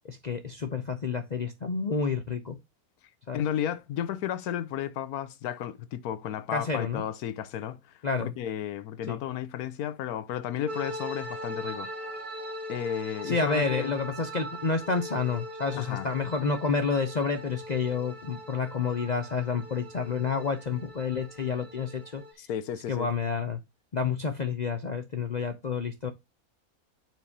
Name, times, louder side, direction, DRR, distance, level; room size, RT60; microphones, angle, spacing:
voice 1, 0.0-2.6 3.3-3.4 6.5-7.0 8.0-8.3 9.1-9.2 13.2-22.2 22.9-23.6 23.9-26.1, left 5 dB, 50° left, 0.5 m, -29 dB
voice 2, 3.3-7.8 8.2-11.9 12.7-13.9 15.7-16.1 22.4-23.1, left 10 dB, 80° left, 1.2 m, -33 dB
sound 1, 10.7-22.3, equal, 80° right, 2.1 m, -40 dB
9.2 x 4.7 x 2.7 m
omnidirectional pair, 1.6 m